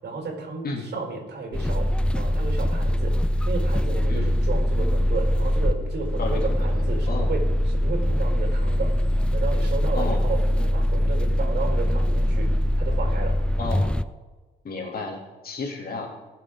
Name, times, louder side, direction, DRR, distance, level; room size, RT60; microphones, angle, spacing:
voice 1, 0.0-13.4, right 4 dB, 60° right, 1 dB, 4.7 m, -33 dB
sound 1, 1.5-14.0, equal, 5° left, 0.4 m, -23 dB
voice 2, 6.2-6.8 7.1-7.3 9.9-10.3 13.6-13.9 14.6-15.2 15.4-16.1, left 3 dB, 50° left, 1 dB, 2.8 m, -32 dB
20.0 x 7.5 x 3.8 m, 1.2 s
cardioid pair, 90°, 20 cm